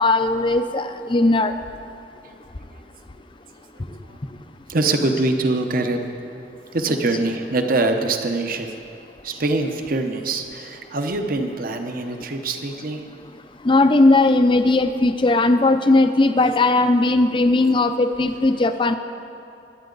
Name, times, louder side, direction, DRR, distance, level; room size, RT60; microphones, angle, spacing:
voice 1, 0.0-1.5 13.6-18.9, left 2 dB, 25° left, 9 dB, 0.5 m, -17 dB
voice 2, 4.7-8.8 9.2-13.1, right 2 dB, 50° right, 5 dB, 0.9 m, -24 dB
22.5 x 9.4 x 4.0 m, 2.7 s
head